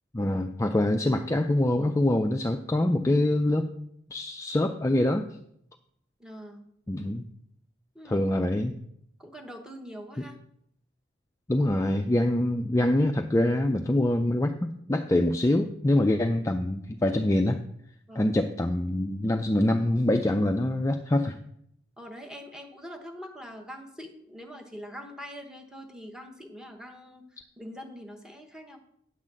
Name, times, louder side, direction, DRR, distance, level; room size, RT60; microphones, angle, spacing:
voice 1, 0.1-3.7 4.1-5.3 6.9-7.2 8.1-8.7 11.5-17.6 18.2-21.4, left 1 dB, 15° left, 5 dB, 0.4 m, -25 dB
voice 2, 6.2-6.7 7.9-8.2 9.2-10.4 18.1-18.3 22.0-28.8, equal, 5° right, 3 dB, 1.0 m, -43 dB
9.8 x 4.0 x 7.4 m, 0.72 s
head